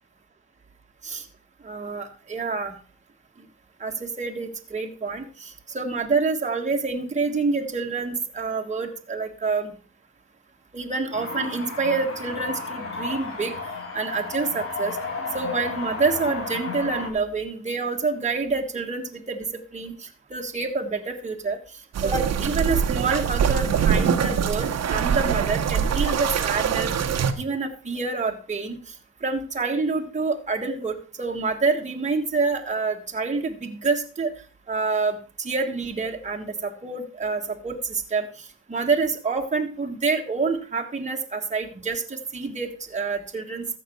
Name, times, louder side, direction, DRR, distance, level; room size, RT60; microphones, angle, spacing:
voice 1, 1.6-2.7 3.8-9.7 10.7-13.5 13.9-15.0 15.3-19.5 19.7-19.9 20.3-21.6 22.0-26.9 27.4-28.8 29.2-34.3 34.7-38.3 38.7-43.7, right 4 dB, 25° right, 2 dB, 1.5 m, -27 dB
sound 1, 11.1-17.1, left 3 dB, 45° left, 2.5 m, -33 dB
sound 2, 21.9-27.3, right 7 dB, 55° right, 1.2 m, -23 dB
14.5 x 6.0 x 4.5 m, 0.38 s
cardioid pair, 90°, 30 cm